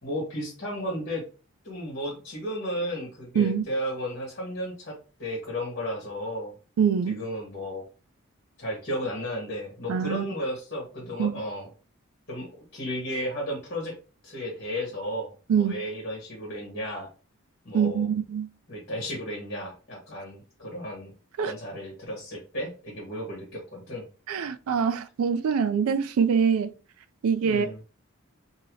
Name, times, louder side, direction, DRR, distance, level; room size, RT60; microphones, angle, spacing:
voice 1, 0.0-1.2 1.6-4.9 5.2-6.5 7.1-7.8 8.6-11.7 12.3-13.9 14.2-17.1 17.6-18.1 18.7-21.1 21.4-24.0 27.4-27.8, equal, 45° left, 1.3 m, -34 dB
voice 2, 6.8-7.2 9.9-10.3 11.2-11.3 15.5-15.8 17.7-18.5 21.4-21.5 24.3-26.7 27.2-27.7, right 6 dB, 80° right, 0.3 m, -24 dB
2.7 x 2.7 x 3.0 m
head